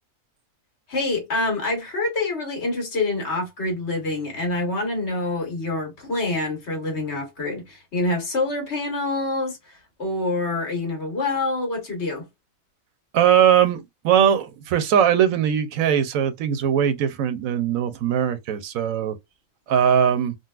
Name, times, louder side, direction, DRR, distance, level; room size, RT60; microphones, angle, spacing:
voice 1, 0.9-12.3, left 2 dB, 55° left, 1.5 m, -26 dB
voice 2, 13.1-19.2 19.7-20.4, right 9 dB, 80° right, 1.0 m, -20 dB
3.8 x 2.2 x 2.3 m
omnidirectional pair, 1.4 m